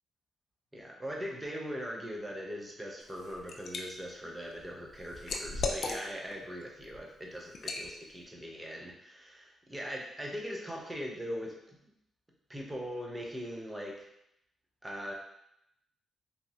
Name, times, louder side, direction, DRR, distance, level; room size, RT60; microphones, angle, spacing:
voice 1, 0.7-11.8 12.5-14.1 14.8-15.1, equal, 10° right, -1 dB, 0.6 m, -40 dB
Liquid, 3.0-3.8 4.3-6.4 6.8-7.0 7.5-7.9, left 3 dB, 55° left, 0.3 m, -36 dB
3.0 x 2.4 x 2.7 m, 0.78 s
cardioid pair, 115°, 0 cm